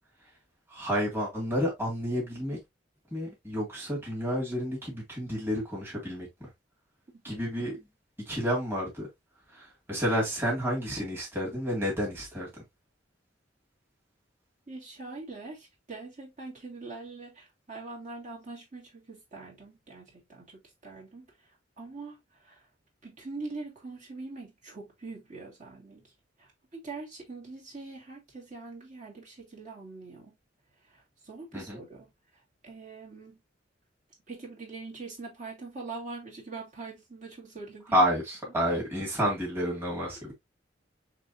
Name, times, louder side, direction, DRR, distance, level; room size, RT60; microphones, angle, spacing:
voice 1, 0.7-2.6 3.1-6.5 7.2-7.7 8.3-9.1 9.5-12.5 31.5-31.8 37.9-40.3, equal, 10° right, 2.0 m, -30 dB
voice 2, 7.1-7.5 14.7-21.5 21.8-22.7 23.0-26.1 26.4-30.4 30.8-32.1 32.6-33.4 34.3-38.0, right 3 dB, 45° right, 2.2 m, -43 dB
6.0 x 3.2 x 2.6 m
head